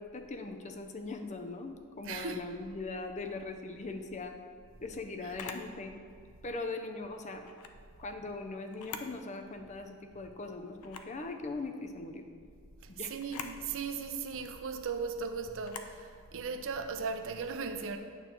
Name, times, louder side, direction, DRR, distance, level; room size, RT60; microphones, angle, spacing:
voice 1, 0.0-4.3 4.8-5.9 6.4-7.5 8.0-12.2 12.9-13.1, left 3 dB, 30° left, 0.5 m, -40 dB
voice 2, 2.0-2.4 12.8-18.0, right 5 dB, 60° right, 0.5 m, -37 dB
Camera, 5.3-5.7 7.4-7.8 8.7-9.2 9.6-9.7 10.8-11.2 13.2-13.6 15.6-16.0, left 6 dB, 90° left, 0.5 m, -43 dB
9.1 x 3.2 x 5.9 m
head